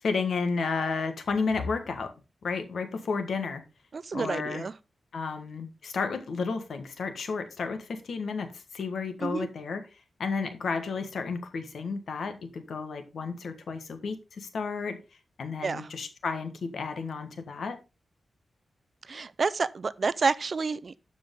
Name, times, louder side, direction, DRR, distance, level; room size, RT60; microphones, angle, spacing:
voice 1, 0.0-2.1 2.4-3.6 4.1-4.6 5.1-9.8 10.2-15.0 15.4-17.8, left 4 dB, 75° left, 1.5 m, -32 dB
voice 2, 3.9-4.7 9.2-9.5 15.6-15.9 19.1-20.9, right 4 dB, 45° right, 0.4 m, -29 dB
12.5 x 5.1 x 3.8 m
wide cardioid pair, 120°, 0 cm